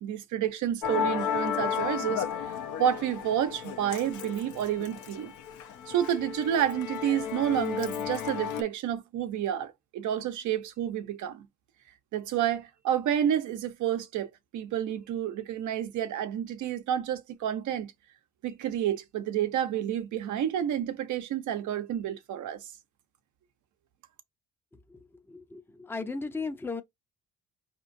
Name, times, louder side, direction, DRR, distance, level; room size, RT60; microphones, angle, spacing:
voice 1, 0.0-5.3 5.9-11.5 12.1-17.9 18.4-22.7, right 10 dB, 75° right, 0.8 m, -30 dB
Musical instrument, 0.8-8.6, left 8 dB, 75° left, 0.7 m, -33 dB
voice 2, 25.3-26.8, left 4 dB, 10° left, 0.5 m, -36 dB
4.9 x 3.0 x 2.6 m
cardioid pair, 90°, 30 cm